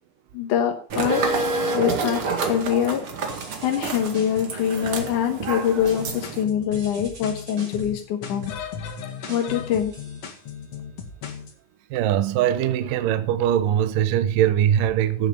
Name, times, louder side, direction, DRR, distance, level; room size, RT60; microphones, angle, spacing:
voice 1, 0.3-1.5 1.7-3.0 3.6-9.9, left 9 dB, 70° left, 2.0 m, -24 dB
sound 1, 0.9-6.4, right 4 dB, 50° right, 1.6 m, -28 dB
sound 2, 3.3-4.6 5.0-5.6 5.8-6.4 6.7-10.7, equal, 25° right, 4.4 m, -42 dB
sound 3, 5.8-11.5, left 7 dB, 50° left, 1.9 m, -37 dB
voice 2, 11.9-15.3, right 10 dB, 80° right, 1.9 m, -21 dB
16.0 x 7.8 x 5.4 m
omnidirectional pair, 5.2 m